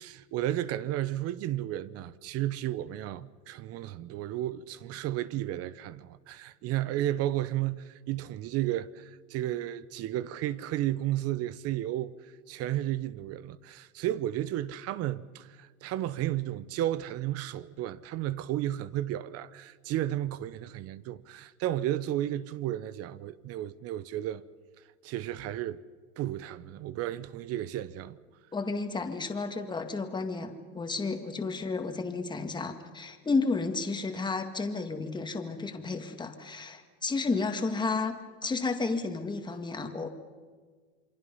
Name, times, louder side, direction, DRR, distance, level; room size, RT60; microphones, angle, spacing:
voice 1, 0.0-12.1 12.5-24.4 25.0-25.8 26.2-28.2, right 13 dB, 45° right, 0.9 m, -33 dB
voice 2, 28.5-38.1 38.4-40.1, left 3 dB, 15° left, 2.0 m, -32 dB
28.0 x 23.5 x 5.5 m
supercardioid pair, 125°, 34 cm